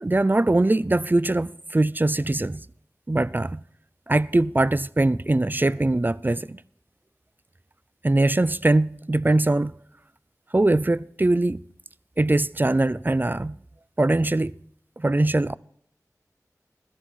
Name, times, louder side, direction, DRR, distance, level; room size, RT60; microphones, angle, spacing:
voice 1, 0.0-2.6 3.1-3.6 4.1-6.6 8.0-9.7 10.5-11.6 12.2-13.6 14.0-14.6 15.0-15.6, right 2 dB, 30° right, 0.5 m, -22 dB
15.5 x 13.5 x 4.2 m
wide cardioid pair, 50°, 6 cm